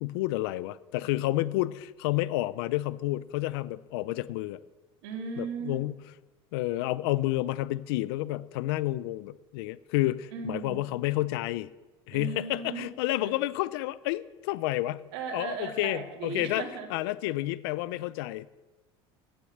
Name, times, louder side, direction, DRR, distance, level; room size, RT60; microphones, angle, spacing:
voice 1, 0.0-4.6 5.4-6.0 6.5-11.7 12.1-15.0 15.3-16.6 16.9-18.5, left 17 dB, 85° left, 19 dB, 0.4 m, -30 dB
voice 2, 5.0-5.8 10.3-10.9 12.1-12.9 13.2-13.4 15.1-16.9, right 5 dB, 80° right, 4 dB, 2.0 m, -37 dB
10.0 x 8.6 x 6.4 m, 1.2 s
supercardioid pair, 105°, 12 cm